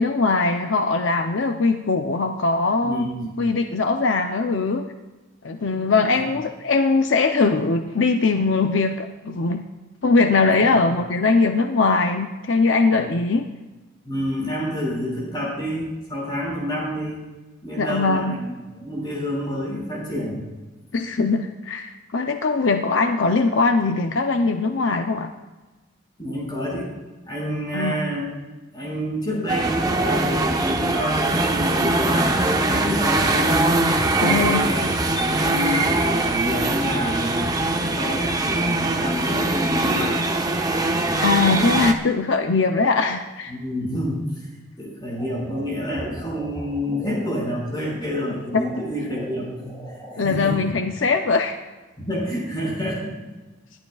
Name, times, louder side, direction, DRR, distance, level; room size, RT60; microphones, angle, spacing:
voice 1, 0.0-3.1 3.4-4.8 5.4-9.6 10.0-13.5 17.8-18.4 20.9-25.3 27.7-28.0 34.2-34.6 41.2-43.5 50.2-51.6, left 3 dB, 70° left, 6 dB, 0.6 m, -21 dB
voice 2, 2.8-3.3 6.1-6.3 10.5-10.9 12.9-13.1 14.0-17.2 17.6-20.4 26.2-26.9 27.3-28.3 28.7-33.6 34.2-34.9 35.2-40.2 43.5-44.5 44.8-49.8 50.1-50.6 52.0-53.2, equal, 25° left, -4 dB, 5.6 m, -28 dB
sound 1, 29.5-41.9, right 2 dB, 20° right, 0.8 m, -22 dB
sound 2, 45.1-50.2, equal, 5° left, 3.7 m, -38 dB
27.0 x 11.5 x 2.4 m, 1.2 s
head